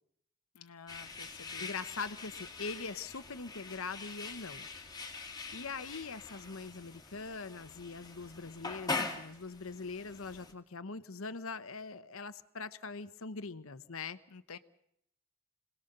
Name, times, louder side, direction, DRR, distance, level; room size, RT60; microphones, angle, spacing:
voice 1, 0.5-1.7 14.3-14.6, left 5 dB, 90° left, 9 dB, 0.9 m, -51 dB
sound 1, 0.9-10.5, left 3 dB, 20° left, 2.3 m, -43 dB
voice 2, 1.2-4.7 5.1-14.2, left 4 dB, 65° left, 12 dB, 1.0 m, -42 dB
27.0 x 19.0 x 6.7 m, 0.74 s
head